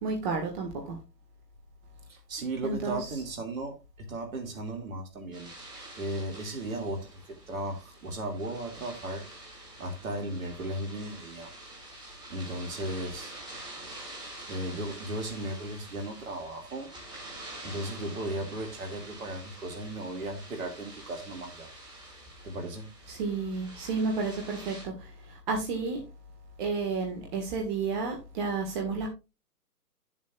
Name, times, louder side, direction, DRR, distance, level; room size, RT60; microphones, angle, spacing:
voice 1, 0.0-1.0 2.6-3.0 23.1-24.9 25.5-26.0 26.6-29.1, right 4 dB, 30° right, 1.6 m, -31 dB
voice 2, 2.1-5.5 6.0-9.2 9.8-11.5 12.3-13.3 14.5-16.9 17.6-21.7 22.4-22.9, right 1 dB, 55° right, 2.4 m, -36 dB
sound 1, 5.3-24.8, right 1 dB, 10° right, 2.4 m, -47 dB
11.0 x 7.3 x 2.4 m
figure-of-eight pair, 135°, 49 cm